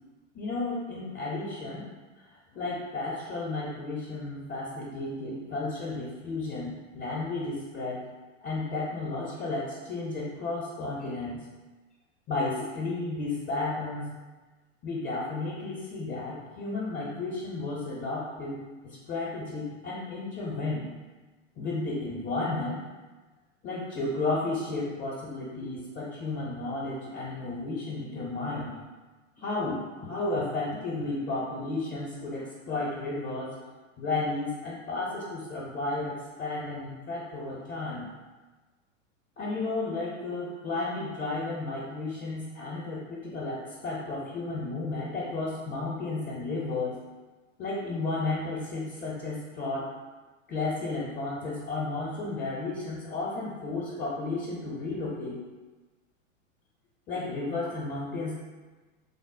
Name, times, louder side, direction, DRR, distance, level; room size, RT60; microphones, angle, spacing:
voice 1, 0.3-1.9 2.2-8.0 8.4-11.5 12.3-14.1 14.8-18.6 18.8-20.9 21.6-22.8 23.6-28.8 29.4-33.5 34.0-38.1 39.4-47.0 47.6-49.9 50.5-55.4 57.1-58.3, left 2 dB, 30° left, -5 dB, 0.6 m, -33 dB
3.4 x 2.0 x 2.5 m, 1.3 s
hypercardioid pair, 100°, 39 cm